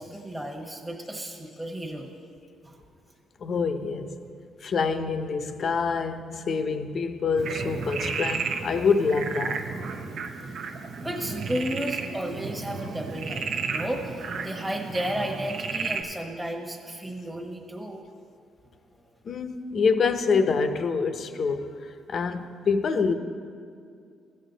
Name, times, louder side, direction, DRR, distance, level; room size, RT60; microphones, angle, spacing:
voice 1, 0.0-2.1 2.6-2.8 11.0-18.0 18.9-19.0, right 1 dB, 5° right, -1 dB, 1.1 m, -33 dB
voice 2, 3.4-4.2 4.6-9.7 19.2-23.1, left 5 dB, 55° left, 9 dB, 0.7 m, -26 dB
Frog, 7.4-16.0, right 5 dB, 65° right, 0.8 m, -33 dB
15.5 x 6.6 x 3.9 m, 2.3 s
cardioid pair, 90°, 0 cm